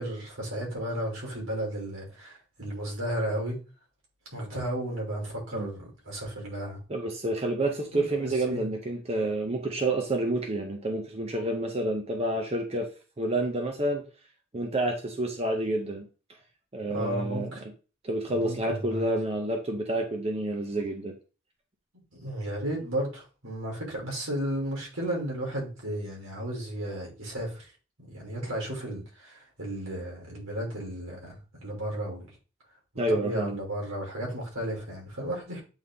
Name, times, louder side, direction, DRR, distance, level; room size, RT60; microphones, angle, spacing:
voice 1, 0.0-3.6 4.3-6.8 7.9-8.7 16.9-17.6 18.3-19.1 22.1-27.7 28.1-32.3 33.1-35.6, right 1 dB, 85° right, 3.2 m, -34 dB
voice 2, 6.9-12.9 13.2-14.0 14.5-16.1 16.7-17.5 18.0-21.1 33.0-33.6, right 1 dB, 30° right, 0.9 m, -29 dB
8.1 x 3.6 x 3.7 m
head